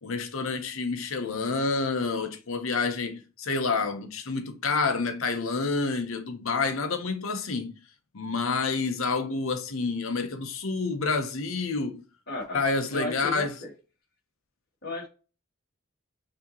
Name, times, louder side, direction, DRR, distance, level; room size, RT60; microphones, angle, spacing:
voice 1, 0.0-7.8 8.1-12.0 12.5-13.5, left 4 dB, 75° left, 0.8 m, -28 dB
voice 2, 12.3-12.6 12.9-13.7 14.8-15.1, left 2 dB, 50° left, 2.0 m, -34 dB
6.1 x 2.9 x 2.9 m
head